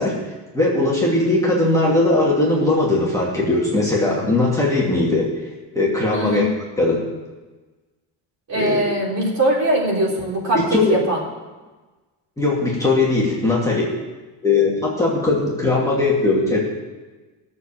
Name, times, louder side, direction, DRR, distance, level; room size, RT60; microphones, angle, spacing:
voice 1, 0.0-5.3 5.7-6.4 6.8-7.0 8.5-8.8 10.5-11.0 12.4-13.9 14.4-16.6, left 2 dB, 5° left, -5 dB, 2.5 m, -19 dB
voice 2, 6.1-6.5 8.5-11.2, right 1 dB, 40° right, -3 dB, 3.9 m, -21 dB
15.5 x 7.1 x 7.5 m, 1.2 s
cardioid pair, 130°, 44 cm